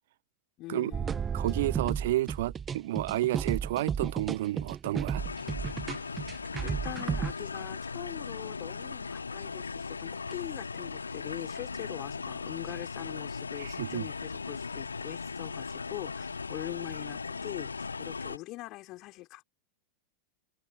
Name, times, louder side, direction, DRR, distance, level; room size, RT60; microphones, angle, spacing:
voice 1, 0.6-1.3 6.6-19.4, left 19 dB, 40° left, 4.3 m, -42 dB
sound 1, 0.9-7.3, right 7 dB, 20° right, 1.1 m, -33 dB
voice 2, 1.3-5.2 13.6-14.1, right 15 dB, 55° right, 1.0 m, -31 dB
sound 2, 5.2-18.4, left 4 dB, 75° left, 0.8 m, -38 dB
figure-of-eight pair, 90°, 0 cm